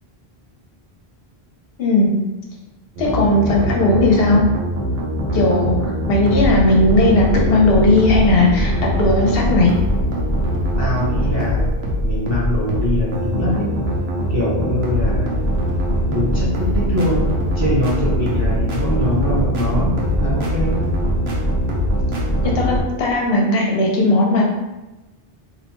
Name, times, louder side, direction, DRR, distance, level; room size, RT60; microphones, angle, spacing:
voice 1, 1.8-2.1 3.0-4.4 5.3-9.7 22.4-24.4, left 2 dB, 70° left, -1 dB, 0.8 m, -16 dB
sound 1, 3.0-22.8, equal, 85° right, 0.9 m, -21 dB
voice 2, 10.8-11.7 12.0-13.7 14.3-15.5 16.1-16.4 16.7-17.3 17.5-20.7, left 1 dB, 20° right, -8 dB, 0.5 m, -23 dB
2.5 x 2.0 x 3.0 m, 1.1 s
omnidirectional pair, 1.0 m